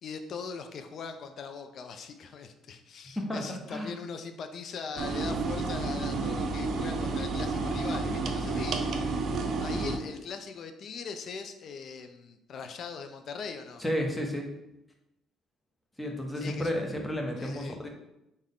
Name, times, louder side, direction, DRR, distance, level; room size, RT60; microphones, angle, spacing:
voice 1, 0.0-9.1 9.6-13.8 16.3-16.8 17.4-17.8, left 5 dB, 60° left, 7 dB, 0.4 m, -40 dB
voice 2, 3.2-3.9 8.5-8.8 13.8-14.5 16.0-17.9, equal, 10° left, 2 dB, 0.8 m, -32 dB
sound 1, 5.0-10.0, right 3 dB, 60° right, 0.4 m, -30 dB
3.5 x 2.1 x 3.6 m, 0.88 s
supercardioid pair, 70°, 0 cm